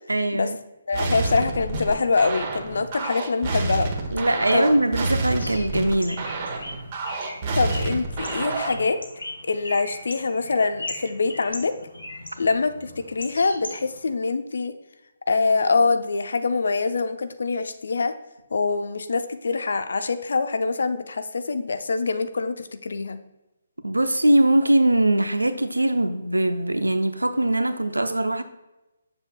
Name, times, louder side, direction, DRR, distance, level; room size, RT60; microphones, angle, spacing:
voice 1, 0.1-0.6 4.1-6.3 23.8-28.4, right 1 dB, 80° right, 9 dB, 0.7 m, -21 dB
voice 2, 0.9-3.9 4.5-4.7 7.5-9.0 9.4-11.7 12.4-14.7 15.3-18.1 18.5-23.2, left 4 dB, 60° left, 10 dB, 0.6 m, -24 dB
sound 1, 0.9-8.9, right 3 dB, 35° right, 1.1 m, -28 dB
Bird, 5.4-14.1, left 2 dB, 75° left, 2.2 m, -39 dB
8.1 x 7.0 x 2.3 m, 0.99 s
figure-of-eight pair, 140°, 0 cm